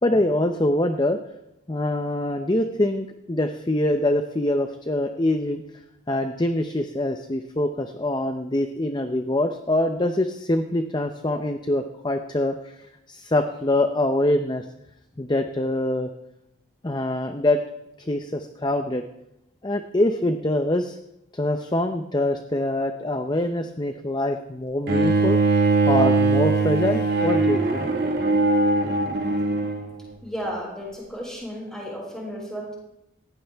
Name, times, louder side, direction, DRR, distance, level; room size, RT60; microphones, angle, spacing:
voice 1, 0.0-1.2 1.7-5.6 6.1-14.6 15.2-16.1 16.8-17.6 18.0-19.0 19.6-21.0 21.3-25.4 25.9-27.9, left 1 dB, 20° left, 7 dB, 0.6 m, -24 dB
Bowed string instrument, 24.9-29.9, right 3 dB, 50° right, 1.9 m, -21 dB
voice 2, 30.2-32.7, equal, 5° left, -4 dB, 6.0 m, -33 dB
18.5 x 16.0 x 3.5 m, 0.87 s
head